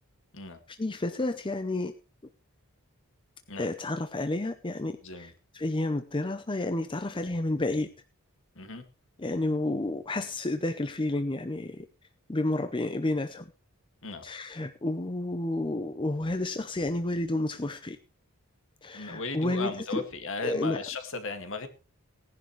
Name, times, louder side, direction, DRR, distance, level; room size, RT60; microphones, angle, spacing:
voice 1, 0.7-1.9 3.6-7.9 9.2-11.9 12.3-13.5 14.2-18.0 18.8-20.0 20.4-20.8, left 2 dB, 20° left, 10 dB, 0.6 m, -30 dB
voice 2, 18.9-21.7, left 3 dB, 60° left, 7 dB, 2.1 m, -36 dB
18.0 x 10.5 x 3.2 m, 0.31 s
head